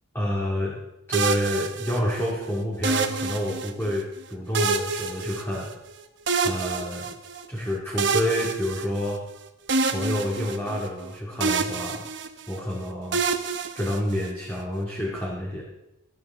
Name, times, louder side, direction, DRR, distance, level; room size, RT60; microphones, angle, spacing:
voice 1, 0.1-0.8 1.1-5.7 6.4-7.1 7.5-9.2 9.9-12.0 12.5-13.2 13.7-15.6, equal, 10° left, -4 dB, 2.3 m, -28 dB
sound 1, 1.1-2.3 2.8-4.0 4.5-5.9 6.3-7.5 8.0-9.3 9.7-11.1 11.4-12.6 13.1-14.5, right 4 dB, 55° right, 1.0 m, -27 dB
26.0 x 8.9 x 3.7 m, 0.90 s
head